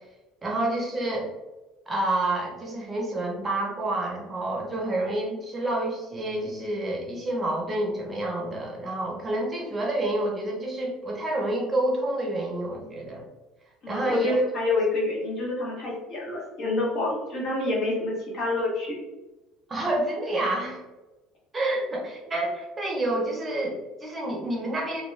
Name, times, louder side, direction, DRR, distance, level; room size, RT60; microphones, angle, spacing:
voice 1, 0.4-1.3 1.9-13.3 13.9-14.4 19.7-20.8 21.5-25.0, right 1 dB, 20° right, -1 dB, 0.7 m, -28 dB
voice 2, 13.8-19.0, left 2 dB, 50° left, -4 dB, 1.0 m, -27 dB
2.3 x 2.2 x 3.1 m, 1.1 s
cardioid pair, 135°, 0 cm